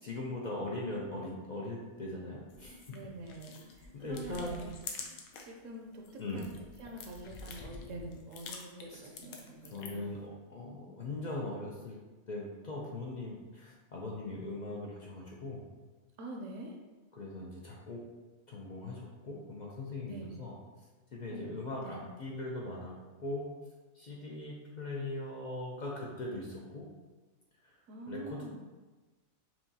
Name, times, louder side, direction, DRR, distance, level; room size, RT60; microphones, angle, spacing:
voice 1, 0.0-2.9 3.9-4.7 6.2-6.5 8.9-9.0 9.7-12.0 12.3-15.6 17.1-18.0 18.5-20.5 21.1-23.5 23.9-26.8 27.6-27.7 28.1-28.6, left 2 dB, 55° left, -3 dB, 0.5 m, -40 dB
sound 1, 2.5-5.6 5.9-10.1, left 4 dB, 90° left, 1.0 m, -47 dB
voice 2, 2.9-4.7 5.4-6.5 6.8-10.0 16.2-16.8 20.1-20.4 21.3-21.5 21.8-22.1 27.9-28.6, right 1 dB, 70° right, 1 dB, 0.9 m, -45 dB
5.7 x 2.3 x 2.7 m, 1.2 s
omnidirectional pair, 1.4 m